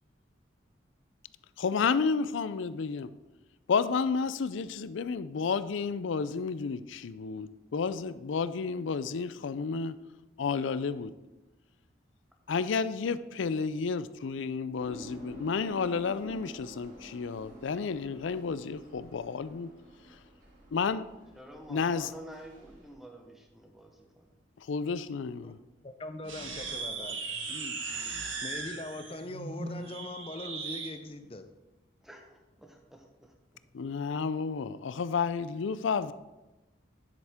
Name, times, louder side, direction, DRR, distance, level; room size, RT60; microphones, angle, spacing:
voice 1, 1.6-3.1 3.7-10.0 10.4-11.1 12.5-19.7 20.7-21.0 21.7-22.1 24.7-25.6 33.7-36.1, left 5 dB, 80° left, 0.4 m, -31 dB
sound 1, 14.8-22.9, right 1 dB, 40° right, 2.1 m, -50 dB
voice 2, 21.3-24.3 27.9-28.3 32.0-33.3, right 1 dB, ahead, 1.0 m, -50 dB
voice 3, 25.8-28.0 28.4-31.5, left 2 dB, 30° left, 0.6 m, -41 dB
sound 2, 26.2-30.9, right 4 dB, 85° right, 1.4 m, -38 dB
9.9 x 7.8 x 3.6 m
head